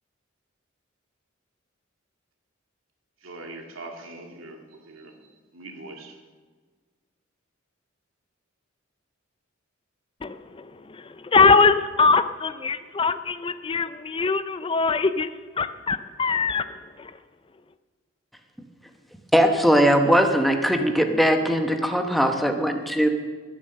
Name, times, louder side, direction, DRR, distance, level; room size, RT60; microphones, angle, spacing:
voice 1, 3.2-5.1 5.5-6.2, right 2 dB, 75° right, 3 dB, 2.1 m, -41 dB
voice 2, 10.2-15.3 15.6-16.7 17.0-17.1, left 4 dB, 25° left, 12 dB, 0.4 m, -22 dB
voice 3, 19.3-23.1, equal, ahead, 5 dB, 1.0 m, -20 dB
20.0 x 7.4 x 6.7 m, 1.5 s
head